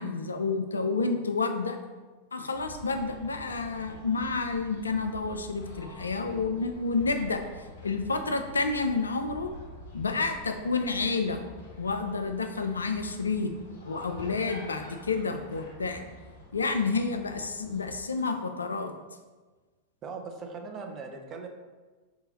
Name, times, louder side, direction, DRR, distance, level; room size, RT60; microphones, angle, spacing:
voice 1, 0.0-1.8 2.3-7.4 7.8-9.5 9.9-11.4 11.8-13.5 13.8-16.0 16.5-18.9, left 4 dB, 75° left, 6 dB, 0.3 m, -29 dB
sound 1, 2.5-18.0, left 1 dB, 60° left, 0.9 m, -47 dB
voice 2, 20.0-21.5, right 4 dB, 30° right, 3 dB, 0.5 m, -39 dB
3.8 x 2.8 x 4.0 m, 1.3 s
figure-of-eight pair, 90°, 0 cm